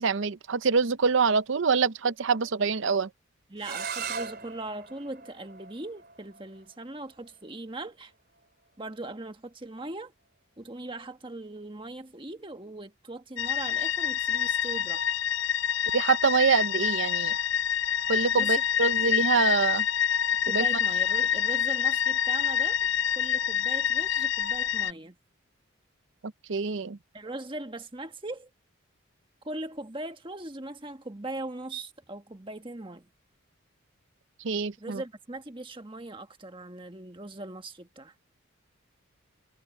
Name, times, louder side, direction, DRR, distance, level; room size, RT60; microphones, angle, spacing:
voice 1, 0.0-3.1 15.9-17.3 18.1-19.9 20.5-20.6 26.5-27.0 34.4-35.0, right 5 dB, 65° right, 0.6 m, -25 dB
voice 2, 3.5-8.1 8.8-10.1 10.6-15.1 18.3-18.6 19.0-19.2 20.4-22.9 23.1-25.1 27.1-28.5 29.4-33.1 34.8-38.1, right 2 dB, 25° right, 1.4 m, -40 dB
sound 1, 3.6-9.3, right 6 dB, 45° right, 4.5 m, -41 dB
sound 2, 13.4-24.9, left 9 dB, 60° left, 0.7 m, -27 dB
head